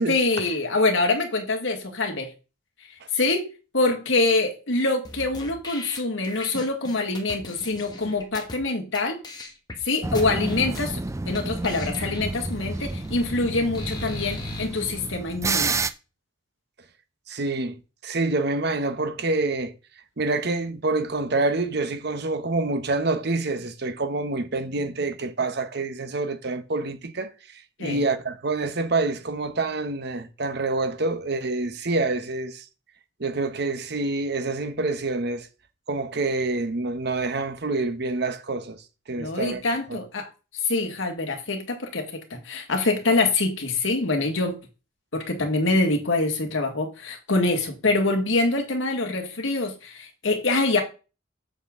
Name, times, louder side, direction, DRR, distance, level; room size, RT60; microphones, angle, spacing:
voice 1, 0.1-2.3 3.1-3.5 3.7-9.2 9.8-15.8 27.8-28.1 39.2-40.3 40.6-44.6 45.1-50.8, left 2 dB, 80° left, 1.7 m, -25 dB
sound 1, 5.0-8.6 8.9-9.0 9.2-9.8 10.1-11.0 11.3-11.4 11.6-14.6, left 2 dB, 20° left, 1.3 m, -38 dB
sound 2, 10.0-15.9, right 3 dB, 15° right, 0.4 m, -30 dB
voice 2, 17.3-19.7 20.2-27.3 27.8-32.6 33.2-35.5 35.9-38.8 39.1-39.6 39.9-40.0, right 3 dB, 55° right, 0.9 m, -27 dB
7.5 x 6.5 x 3.7 m
head